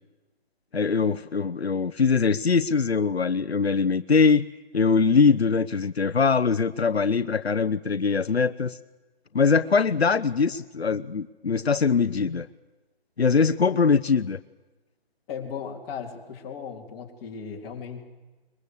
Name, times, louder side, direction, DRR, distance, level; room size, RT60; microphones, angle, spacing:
voice 1, 0.7-4.5 4.7-8.8 9.3-12.5 13.2-14.4, left 5 dB, 90° left, 11 dB, 1.1 m, -22 dB
voice 2, 15.3-18.0, left 6 dB, 25° left, -1 dB, 4.0 m, -36 dB
22.5 x 22.5 x 8.2 m, 1.2 s
figure-of-eight pair, 150°, 31 cm